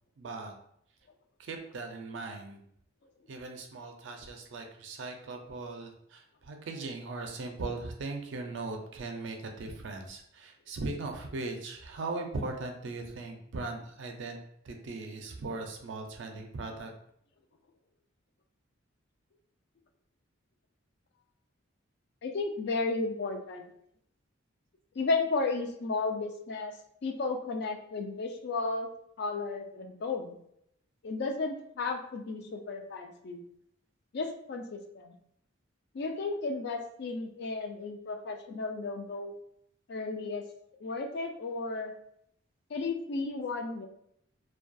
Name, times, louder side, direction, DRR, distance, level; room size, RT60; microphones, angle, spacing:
voice 1, 0.2-0.5 1.4-2.6 3.3-14.4 14.6-16.9, right 3 dB, 60° right, 4 dB, 0.4 m, -39 dB
voice 2, 22.2-23.7 25.0-26.7 27.0-28.9 29.2-30.4 31.0-33.4 34.1-35.1 35.9-39.3 39.9-40.4 40.8-41.9 42.7-43.9, left 3 dB, 55° left, 5 dB, 0.3 m, -33 dB
2.3 x 2.2 x 2.5 m, 0.72 s
head